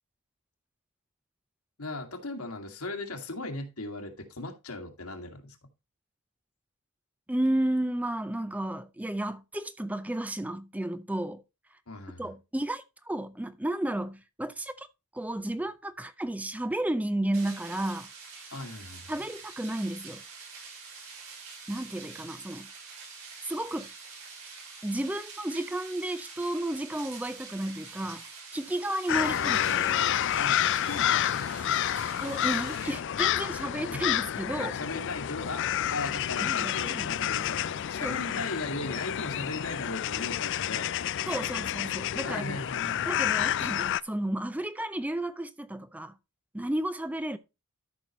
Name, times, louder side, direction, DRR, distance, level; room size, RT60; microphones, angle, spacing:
voice 1, 1.8-5.6 11.9-12.3 18.5-19.2 29.1-31.8 33.9-34.0 34.6-41.5 42.2-43.7, left 2 dB, 80° left, 2.1 m, -38 dB
voice 2, 7.3-11.4 12.2-14.9 15.1-18.1 19.1-20.2 21.7-22.7 23.4-23.9 24.8-28.2 28.5-29.9 32.2-34.8 36.4-37.1 38.0-38.2 41.3-42.6 43.1-46.1 46.5-47.4, right 1 dB, 5° right, 0.4 m, -32 dB
sound 1, 17.3-33.0, right 5 dB, 75° right, 5.6 m, -46 dB
sound 2, 29.1-44.0, left 11 dB, 55° left, 0.4 m, -29 dB
13.0 x 5.8 x 3.0 m
head